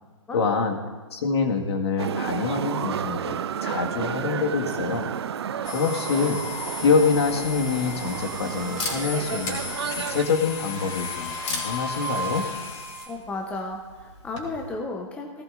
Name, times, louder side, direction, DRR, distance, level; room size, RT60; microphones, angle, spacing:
voice 1, 0.3-0.8 1.1-5.1 5.7-6.5 6.8-9.6 9.9-12.5, left 5 dB, 50° left, 3 dB, 1.8 m, -25 dB
sound 1, 2.0-10.2, right 8 dB, 50° right, 0.6 m, -31 dB
sound 2, 5.6-13.1, left 3 dB, 20° left, 3.1 m, -34 dB
Camera, 6.4-14.7, left 3 dB, 65° left, 4.0 m, -40 dB
voice 2, 13.1-15.4, left 2 dB, 5° left, 1 dB, 0.9 m, -33 dB
18.0 x 17.5 x 2.6 m, 1.5 s
figure-of-eight pair, 135°, 17 cm